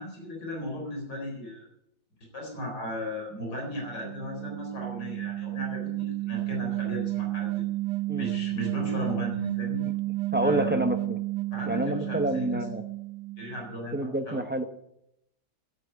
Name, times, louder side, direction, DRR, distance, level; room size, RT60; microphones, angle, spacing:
voice 1, 0.0-1.6 2.3-7.8 8.2-9.8 10.4-10.8 11.5-12.6 13.4-14.0 14.3-14.5, left 1 dB, 80° left, 0 dB, 4.8 m, -36 dB
sound 1, 3.7-13.8, right 18 dB, 70° right, 1.3 m, -32 dB
voice 2, 10.3-11.2 11.7-12.8 13.9-14.6, right 1 dB, 15° right, 8 dB, 0.4 m, -28 dB
12.0 x 8.8 x 9.5 m, 0.81 s
omnidirectional pair, 1.8 m